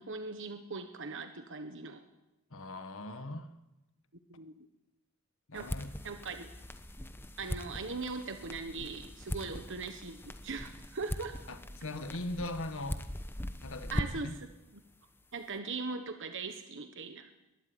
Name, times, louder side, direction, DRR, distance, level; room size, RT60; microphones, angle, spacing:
voice 1, 0.0-2.0 4.3-4.5 5.5-5.7 6.0-6.5 7.4-11.4 13.9-14.5 14.7-14.8 15.3-17.3, right 4 dB, 60° right, 7 dB, 1.2 m, -40 dB
voice 2, 2.5-3.5 5.5-5.9 11.5-13.0 13.6-14.4, left 2 dB, 65° left, 9 dB, 1.6 m, -40 dB
sound 1, 5.6-14.4, left 1 dB, 10° left, 0.9 m, -41 dB
22.5 x 12.0 x 9.9 m, 1.0 s
head